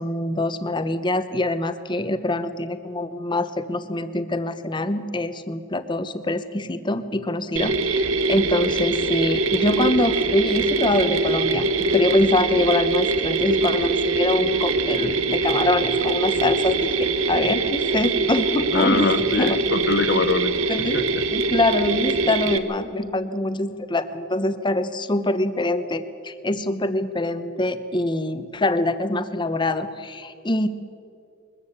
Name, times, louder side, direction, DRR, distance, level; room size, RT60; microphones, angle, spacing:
voice 1, 0.0-19.1 19.4-19.6 20.7-21.0 21.3-30.7, left 2 dB, 20° left, 11 dB, 0.8 m, -24 dB
Mechanisms, 7.6-22.6, right 3 dB, 70° right, 1.1 m, -23 dB
voice 2, 18.7-20.5 20.9-21.2, left 3 dB, 55° left, 11 dB, 0.9 m, -23 dB
21.5 x 14.0 x 8.6 m, 2.5 s
head